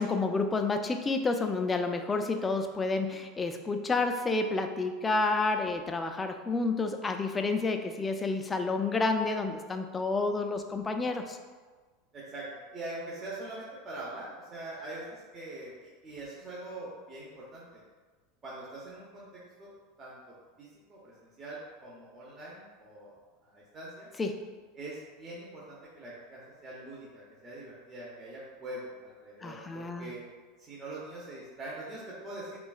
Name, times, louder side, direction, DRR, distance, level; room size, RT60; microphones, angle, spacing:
voice 1, 0.0-11.4 24.2-24.5 29.4-30.1, left 3 dB, 20° left, 6 dB, 0.3 m, -30 dB
voice 2, 12.1-12.5 12.7-17.8 18.4-19.7 20.0-20.2 20.6-23.1 23.4-24.1 24.8-30.2 30.6-32.6, right 2 dB, 30° right, -7 dB, 0.8 m, -43 dB
5.5 x 2.3 x 2.3 m, 1.4 s
supercardioid pair, 120°, 0 cm